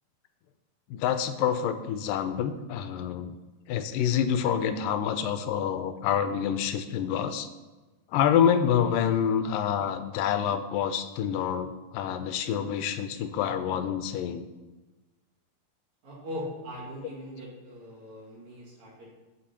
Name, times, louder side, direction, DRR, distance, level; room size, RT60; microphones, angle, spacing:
voice 1, 0.9-3.3 3.7-7.5 8.1-14.5, left 8 dB, 90° left, 10 dB, 2.3 m, -27 dB
voice 2, 16.0-19.1, left 1 dB, 55° right, -5 dB, 3.7 m, -40 dB
11.5 x 7.4 x 2.9 m, 1.2 s
omnidirectional pair, 3.8 m